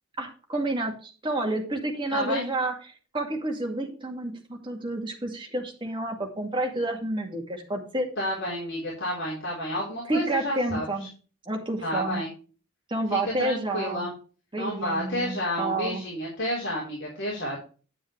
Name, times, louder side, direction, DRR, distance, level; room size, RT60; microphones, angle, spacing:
voice 1, 0.2-2.7 3.1-8.1 10.1-11.1 11.5-12.2 12.9-14.1 14.5-16.0, right 2 dB, 25° right, 2 dB, 2.2 m, -29 dB
voice 2, 2.1-2.4 8.2-10.9 11.8-12.3 13.4-14.1 14.6-17.6, equal, 60° left, -5 dB, 4.3 m, -30 dB
9.9 x 9.3 x 3.3 m, 0.37 s
head